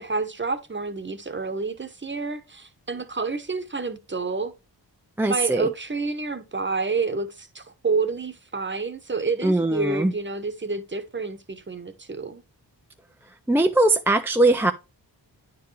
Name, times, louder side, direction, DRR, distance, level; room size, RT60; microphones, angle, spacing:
voice 1, 0.0-4.5 5.3-12.4, right 4 dB, 25° right, 1.0 m, -29 dB
voice 2, 5.2-5.7 9.4-10.1 13.5-14.7, right 2 dB, 5° right, 0.4 m, -20 dB
9.2 x 4.6 x 3.3 m
cardioid pair, 60°, 44 cm